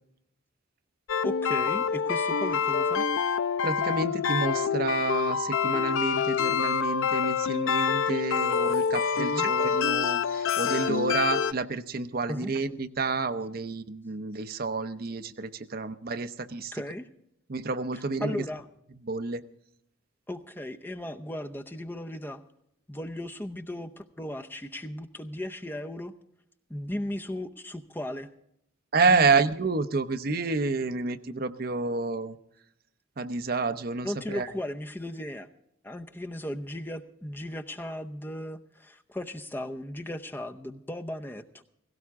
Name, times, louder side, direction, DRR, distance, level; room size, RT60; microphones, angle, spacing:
sound 1, 1.1-11.5, left 6 dB, 70° left, 0.4 m, -26 dB
voice 1, 1.2-3.0 9.2-9.5 12.3-12.5 16.7-17.1 17.9-18.6 20.3-22.4 22.9-26.1 26.7-28.3 29.1-29.4 34.0-35.5 35.8-41.6, left 1 dB, 10° left, 5 dB, 0.6 m, -36 dB
voice 2, 3.6-16.7 17.5-18.4 19.0-19.4 28.9-32.4 33.2-34.5, right 4 dB, 45° right, 10 dB, 0.7 m, -29 dB
17.0 x 16.5 x 3.6 m, 0.76 s
head